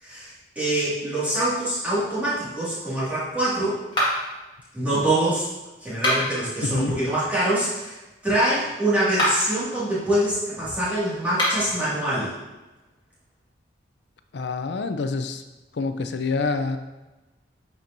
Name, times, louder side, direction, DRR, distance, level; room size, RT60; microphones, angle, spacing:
voice 1, 0.0-3.8 4.7-5.5 5.8-8.0 8.2-12.3, right 1 dB, 10° right, -10 dB, 2.1 m, -24 dB
sound 1, 3.9-4.4 5.9-6.5 9.0-9.6 11.3-11.8, equal, 25° left, 1.7 m, -25 dB
voice 2, 6.6-6.9 14.3-15.4 15.8-16.8, left 3 dB, 65° left, 8 dB, 0.4 m, -26 dB
9.6 x 4.4 x 2.6 m, 1.1 s
head